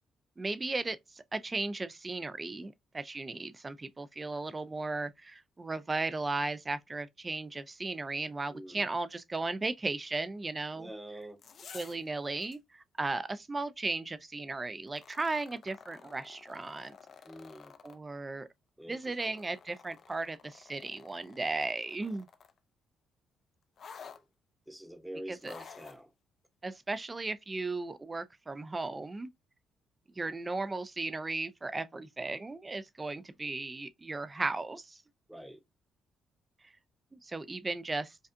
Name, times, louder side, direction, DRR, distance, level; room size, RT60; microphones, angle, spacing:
voice 1, 0.4-10.9 11.7-16.9 17.8-18.5 18.9-22.3 25.3-25.5 26.6-29.3 30.2-35.0 37.1-38.2, right 3 dB, 25° right, 0.4 m, -36 dB
voice 2, 8.5-8.8 10.7-11.4 17.2-17.7 18.8-19.0 19.3-19.4 24.0-24.2 24.7-26.1 35.3-35.6, right 1 dB, 5° right, 0.9 m, -46 dB
sound 1, 11.2-12.1 12.4-12.6 14.9-18.0 18.9-22.6 23.8-24.2 25.4-26.0 26.9-27.0, left 6 dB, 55° left, 0.5 m, -52 dB
5.2 x 2.4 x 2.5 m
cardioid pair, 90°, 0 cm